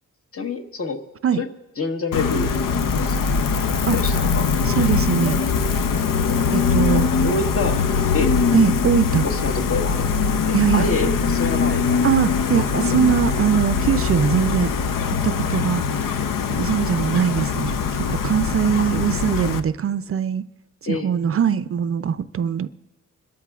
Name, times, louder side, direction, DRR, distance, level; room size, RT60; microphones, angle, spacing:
voice 1, 0.3-1.0 1.3-1.5 1.8-3.5 3.9-4.5 6.9-7.8 8.1-8.3 9.2-12.0 12.6-12.9 18.8-19.0 20.9-21.1, left 3 dB, 45° left, 1.3 m, -28 dB
Gull seagull, 2.1-19.6, left 5 dB, 85° left, 0.7 m, -22 dB
voice 2, 4.7-5.4 6.5-7.1 8.5-9.3 10.5-10.9 12.0-14.7 15.2-16.2 16.5-17.7 18.1-20.4 20.8-22.7, right 8 dB, 45° right, 0.4 m, -21 dB
26.0 x 13.0 x 2.4 m
wide cardioid pair, 115°, 32 cm